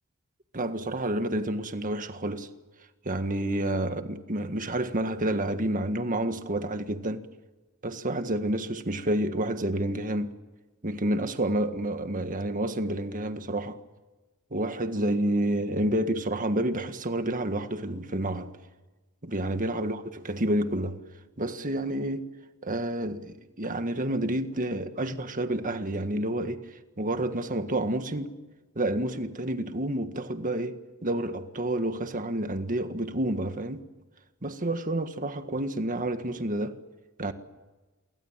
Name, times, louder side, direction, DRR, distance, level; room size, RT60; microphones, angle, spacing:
voice 1, 0.5-2.5 3.0-7.3 7.8-10.3 10.8-13.8 14.5-18.5 19.2-21.0 21.4-22.3 22.6-26.6 27.0-28.4 28.7-30.8 31.0-33.8 34.4-36.8 37.2-37.3, right 1 dB, 40° right, 1.7 m, -29 dB
28.5 x 24.0 x 7.5 m
head